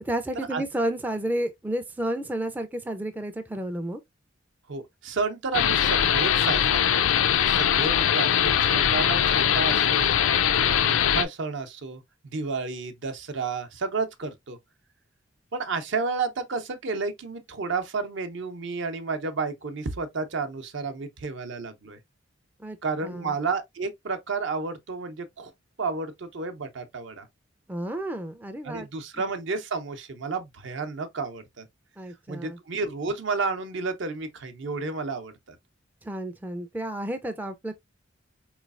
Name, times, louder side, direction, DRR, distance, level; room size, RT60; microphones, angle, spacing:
voice 1, 0.0-4.0 22.6-22.8 23.0-23.3 27.7-28.9 32.0-32.6 36.0-37.7, right 1 dB, 10° right, 0.3 m, -31 dB
voice 2, 4.7-10.1 10.5-12.0 12.3-14.6 15.5-22.0 22.8-25.5 25.8-27.3 28.6-31.7 32.3-35.6, right 4 dB, 65° right, 0.6 m, -31 dB
sound 1, 5.5-11.2, left 9 dB, 90° left, 0.4 m, -22 dB
4.0 x 3.1 x 2.4 m
head